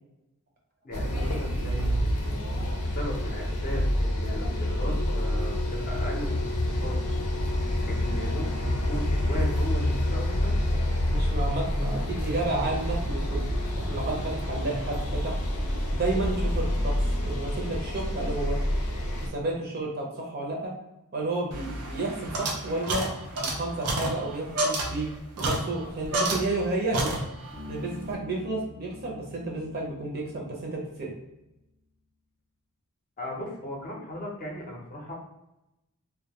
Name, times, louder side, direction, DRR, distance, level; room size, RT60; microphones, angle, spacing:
voice 1, 0.8-2.4 2.9-5.6 5.9-7.0 7.6-10.6 33.2-35.1, equal, 40° left, -1 dB, 0.6 m, -37 dB
sound 1, 0.9-19.3, left 1 dB, 85° left, 0.5 m, -28 dB
voice 2, 11.1-13.6 13.9-15.3 15.9-17.0 17.2-18.6 19.2-20.7 21.1-23.1 23.4-25.1 25.4-27.1 27.7-31.1, right 2 dB, 45° right, -2 dB, 0.6 m, -31 dB
sound 2, 21.5-26.7 26.9-27.6, right 2 dB, 90° right, 0.6 m, -30 dB
Bass guitar, 27.5-31.2, left 3 dB, 5° right, 0.4 m, -45 dB
2.2 x 2.2 x 2.8 m, 0.91 s
head